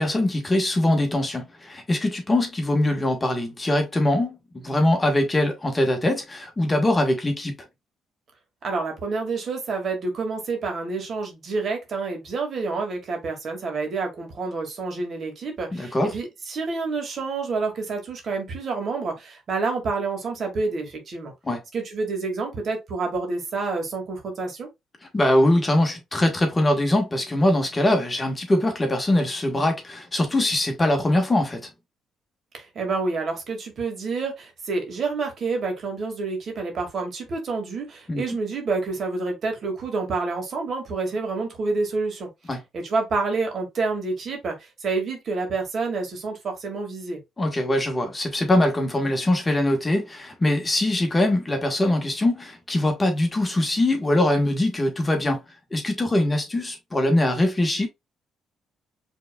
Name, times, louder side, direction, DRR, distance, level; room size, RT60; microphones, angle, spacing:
voice 1, 0.0-7.5 15.7-16.1 21.4-21.6 25.1-31.7 38.1-38.2 42.5-42.6 47.4-55.4 55.7-57.9, left 1 dB, 20° left, 1.4 m, -22 dB
voice 2, 8.6-21.3 21.7-24.7 32.5-42.3 42.7-47.2, right 3 dB, 55° right, 1.9 m, -28 dB
5.1 x 3.5 x 2.2 m
cardioid pair, 90°, 0 cm